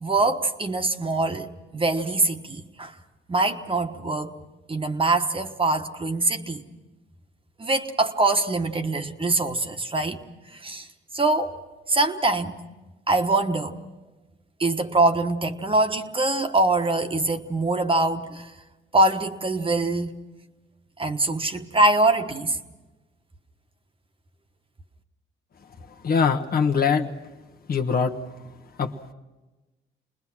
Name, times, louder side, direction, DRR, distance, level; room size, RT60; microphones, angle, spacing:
voice 1, 0.0-2.9 3.3-4.4 4.7-6.6 7.6-10.2 10.6-10.9 11.1-11.5 11.9-12.5 13.1-13.8 14.6-18.5 18.9-20.2 21.0-22.6, right 2 dB, 25° right, 6 dB, 1.3 m, -23 dB
voice 2, 26.0-27.2 27.7-28.1 28.8-29.1, left 5 dB, 50° left, 4 dB, 1.3 m, -22 dB
29.0 x 20.5 x 6.1 m, 1.2 s
cardioid pair, 90°, 20 cm